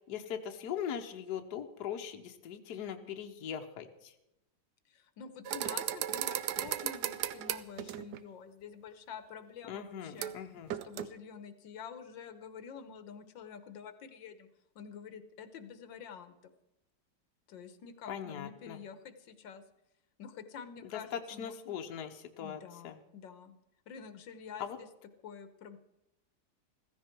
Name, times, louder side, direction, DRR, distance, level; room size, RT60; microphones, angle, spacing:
voice 1, 0.0-4.1 9.7-10.8 18.1-18.8 20.8-23.0 24.6-24.8, left 8 dB, 65° left, 5 dB, 1.4 m, -40 dB
voice 2, 4.9-10.3 10.8-14.5 14.7-16.5 17.5-19.6 20.2-21.7 22.4-23.6 23.9-24.9 25.2-25.8, left 7 dB, 80° left, 10 dB, 1.7 m, -48 dB
sound 1, 5.5-8.2 10.2-10.4 10.7-11.1, right 11 dB, 70° right, 1.2 m, -35 dB
15.5 x 15.0 x 4.5 m, 0.88 s
omnidirectional pair, 2.0 m